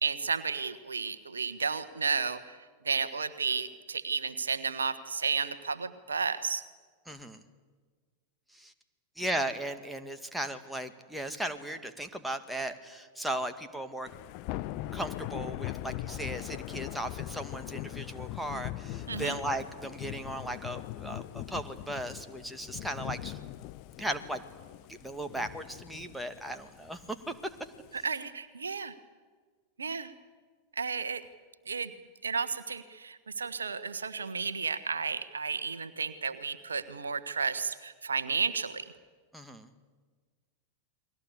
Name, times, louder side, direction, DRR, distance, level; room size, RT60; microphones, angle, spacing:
voice 1, 0.0-2.6 2.8-6.6 19.1-19.4 27.9-28.9 29.8-30.1 30.8-31.2 31.7-31.9 32.2-38.9, right 5 dB, 75° right, 11 dB, 1.3 m, -32 dB
voice 2, 7.1-7.4 8.5-8.7 9.2-14.1 14.9-23.4 24.0-24.4 24.9-27.5 39.3-39.7, right 1 dB, ahead, 6 dB, 2.1 m, -36 dB
Thunder / Rain, 14.1-28.0, left 15 dB, 45° left, 0.9 m, -41 dB
30.0 x 22.0 x 8.4 m, 1.5 s
figure-of-eight pair, 90°, 0 cm